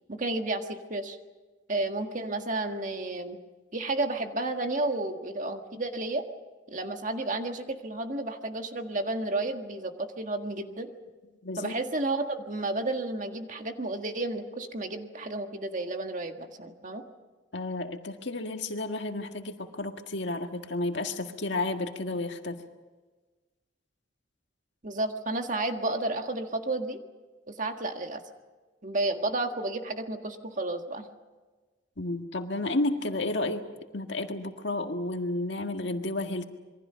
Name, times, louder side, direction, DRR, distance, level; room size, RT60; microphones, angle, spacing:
voice 1, 0.1-1.2 1.7-3.4 3.7-6.2 6.7-10.9 11.6-17.0 24.8-27.0 27.5-28.2 28.8-31.1, right 2 dB, 40° right, 5 dB, 1.7 m, -32 dB
voice 2, 11.4-11.8 17.5-22.6 32.0-33.6 33.9-36.4, left 2 dB, 60° left, 5 dB, 1.8 m, -31 dB
27.0 x 23.0 x 5.8 m, 1.3 s
head